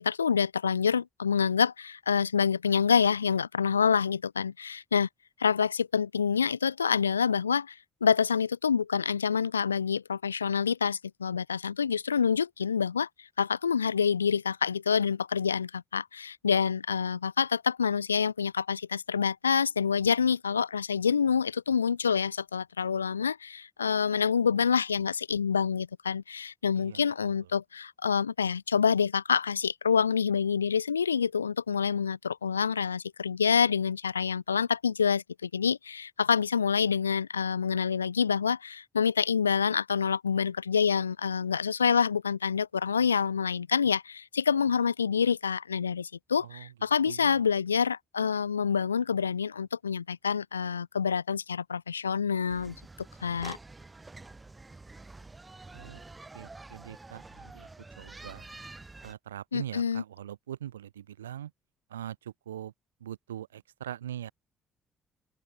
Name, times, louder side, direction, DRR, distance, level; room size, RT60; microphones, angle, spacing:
voice 1, 0.0-5.1 5.4-13.1 13.4-52.8 53.2-53.6 59.5-60.0, left 6 dB, 85° left, 0.4 m, -27 dB
voice 2, 46.4-46.7 47.1-47.4 55.7-56.0 56.3-57.7 58.0-58.5 59.0-61.5 61.9-62.7 63.0-64.3, right 11 dB, 80° right, 2.7 m, -42 dB
sound 1, 52.5-59.1, right 3 dB, 20° right, 4.3 m, -48 dB
open air
figure-of-eight pair, 45°, 0 cm